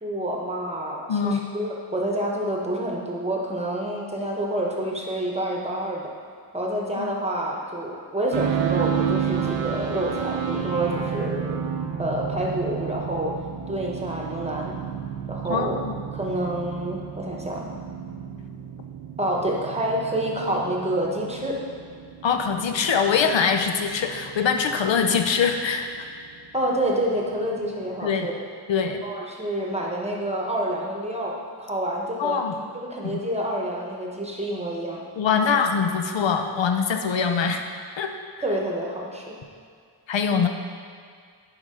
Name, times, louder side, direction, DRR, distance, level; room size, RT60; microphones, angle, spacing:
voice 1, 0.0-6.1 6.5-11.6 12.0-13.3 13.7-14.7 15.3-15.8 16.1-17.7 19.2-21.6 26.5-28.4 29.0-32.4 32.7-35.0 38.4-39.3, right 1 dB, 15° right, -2 dB, 1.0 m, -28 dB
voice 2, 1.1-1.5 7.0-7.1 15.5-15.9 22.2-26.1 28.0-28.3 28.7-29.0 32.2-32.5 33.0-33.2 35.2-37.6 38.0-38.1 40.1-40.5, left 6 dB, 85° left, 5 dB, 0.7 m, -23 dB
sound 1, 8.3-28.3, right 8 dB, 80° right, 0.7 m, -32 dB
10.5 x 4.8 x 3.7 m, 2.1 s
wide cardioid pair, 140°, 43 cm